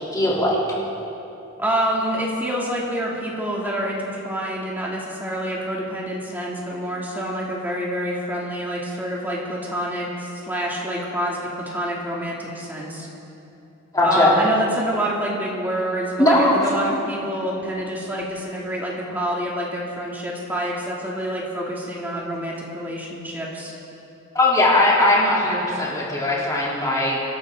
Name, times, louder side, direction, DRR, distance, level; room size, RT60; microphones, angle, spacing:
voice 1, 0.1-0.6 13.9-14.3 16.2-16.8 24.3-27.2, left 1 dB, 20° left, -6 dB, 3.4 m, -19 dB
voice 2, 1.6-13.1 14.0-23.7, equal, 10° right, -4 dB, 2.8 m, -27 dB
26.0 x 11.5 x 3.9 m, 2.9 s
head